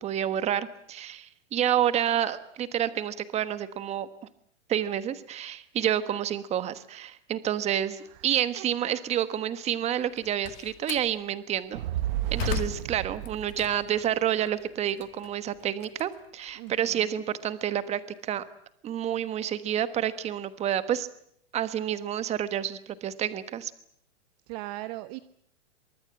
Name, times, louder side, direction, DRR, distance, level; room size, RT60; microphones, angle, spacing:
voice 1, 0.0-4.1 4.7-11.8 12.3-18.4 18.8-21.1 21.5-23.7, right 10 dB, 20° right, 13 dB, 1.3 m, -29 dB
voice 2, 8.6-9.0 16.6-17.2 24.5-25.2, right 17 dB, 35° right, 12 dB, 1.0 m, -40 dB
Slam, 10.0-11.1 11.7-14.0 14.5-16.8, left 16 dB, 40° left, 1.8 m, -38 dB
Fire, 11.7-14.2, right 14 dB, 50° right, 1.3 m, -32 dB
24.0 x 22.5 x 8.9 m, 0.69 s
hypercardioid pair, 150°, 35 cm